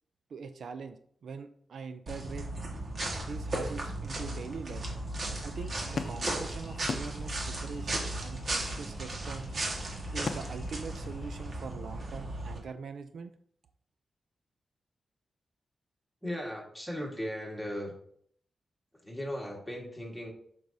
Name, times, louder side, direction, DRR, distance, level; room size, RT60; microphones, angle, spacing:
voice 1, 0.3-2.5 3.2-4.8 5.4-9.5 10.1-13.3, right 5 dB, 70° right, 9 dB, 0.4 m, -43 dB
sound 1, 2.1-12.6, right 1 dB, 50° right, 1.5 m, -36 dB
sound 2, 5.6-11.5, left 4 dB, 50° left, 0.6 m, -43 dB
voice 2, 16.2-18.0 19.0-20.3, equal, ahead, -1 dB, 1.6 m, -37 dB
7.7 x 5.3 x 2.7 m, 0.63 s
wide cardioid pair, 135°, 0 cm